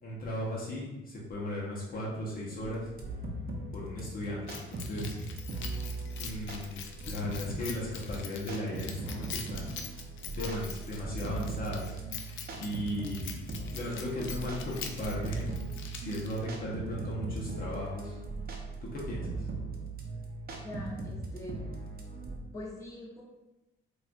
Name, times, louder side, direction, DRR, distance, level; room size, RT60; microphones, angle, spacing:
voice 1, 0.0-2.9 3.7-5.2 6.2-9.7 10.3-13.3 13.7-15.5 15.9-18.2 18.8-19.5, left 1 dB, 45° left, -5 dB, 0.8 m, -36 dB
sound 1, 2.6-22.4, right 3 dB, 50° right, 0.6 m, -39 dB
Keys jangling, 4.5-16.6, left 7 dB, 80° left, 0.4 m, -44 dB
voice 2, 20.6-21.6 22.5-23.2, left 1 dB, 15° left, -5 dB, 0.9 m, -42 dB
4.1 x 2.3 x 2.4 m, 1.0 s
cardioid pair, 90°, 20 cm